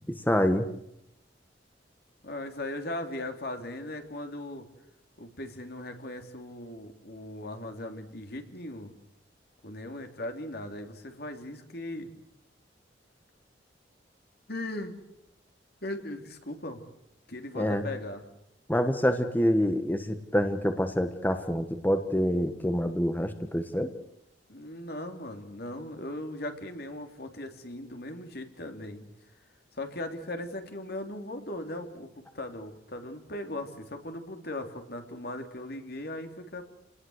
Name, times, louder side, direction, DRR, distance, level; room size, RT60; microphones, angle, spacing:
voice 1, 0.2-0.7 17.5-17.8 18.7-23.9, equal, 10° left, 7 dB, 1.4 m, -26 dB
voice 2, 2.2-4.6 5.2-8.9 9.6-12.1 14.5-14.9 15.8-16.8 17.3-18.2 24.5-29.0 29.7-36.6, left 1 dB, 60° left, 5 dB, 3.4 m, -38 dB
29.0 x 19.5 x 8.1 m, 0.78 s
head